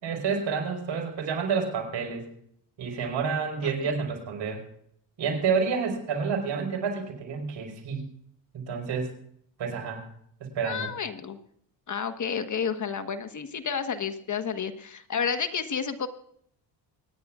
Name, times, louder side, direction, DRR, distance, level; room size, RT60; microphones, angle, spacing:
voice 1, 0.0-2.3 2.8-4.6 5.2-8.0 8.5-9.1 9.6-10.0 10.4-10.9, right 5 dB, 75° right, 3 dB, 4.8 m, -29 dB
voice 2, 10.6-11.4 11.9-16.1, left 6 dB, 40° left, 8 dB, 1.3 m, -31 dB
25.0 x 10.5 x 2.4 m, 0.67 s
cardioid pair, 80°, 43 cm